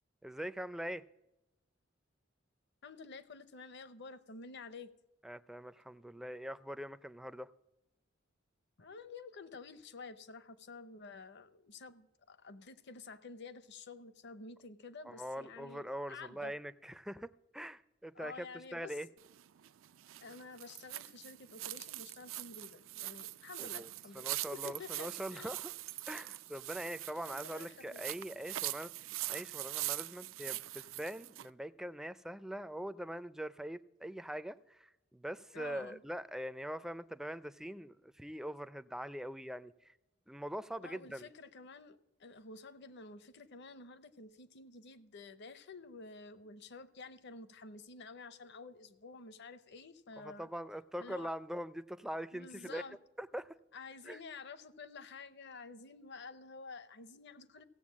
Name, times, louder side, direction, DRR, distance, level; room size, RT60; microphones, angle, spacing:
voice 1, 0.2-1.0 5.2-7.5 15.0-18.5 18.7-19.1 23.6-23.9 24.2-25.7 26.1-28.9 29.3-39.9 40.3-41.3 50.2-52.8 53.2-53.6 54.1-54.2, equal, 5° right, 13 dB, 0.4 m, -43 dB
voice 2, 2.8-4.9 8.8-16.5 18.1-19.0 20.2-25.6 27.2-28.1 35.5-36.0 40.8-50.5 51.0-51.3 52.3-53.0 53.7-57.6, left 4 dB, 60° left, 14 dB, 0.8 m, -50 dB
sound 1, 19.2-31.5, right 16 dB, 85° right, 0.4 m, -43 dB
15.5 x 7.6 x 7.4 m, 0.97 s
head